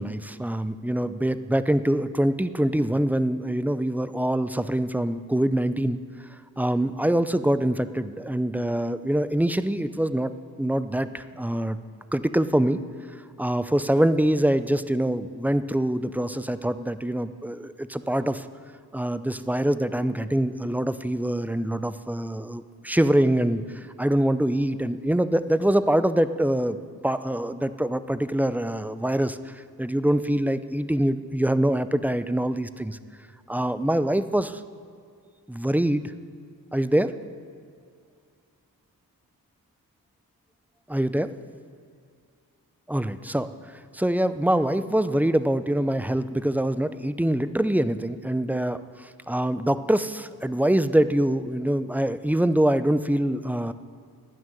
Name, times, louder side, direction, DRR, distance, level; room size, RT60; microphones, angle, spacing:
voice 1, 0.0-6.0 6.6-11.8 12.1-12.8 13.4-18.5 18.9-33.0 33.5-34.6 35.5-36.1 36.7-37.2 40.9-41.3 42.9-43.5 43.9-53.7, right 1 dB, 5° right, 12 dB, 0.5 m, -24 dB
13.0 x 6.3 x 9.6 m, 2.2 s
cardioid pair, 65°, 38 cm